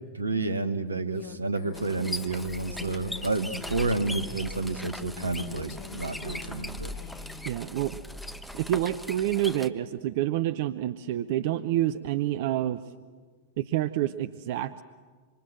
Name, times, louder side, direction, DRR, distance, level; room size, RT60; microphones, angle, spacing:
voice 1, 0.1-6.9, right 3 dB, 80° right, 10 dB, 1.5 m, -30 dB
Female speech woman speaking, 1.1-4.4 5.3-7.6, left 11 dB, 45° left, 1.3 m, -47 dB
sound 1, 1.7-9.7, left 1 dB, 5° left, 1.1 m, -39 dB
voice 2, 7.4-8.0 8.5-12.8 13.6-14.8, right 13 dB, 50° right, 12 dB, 0.7 m, -28 dB
27.0 x 25.0 x 7.8 m, 1.5 s
figure-of-eight pair, 90°, 0 cm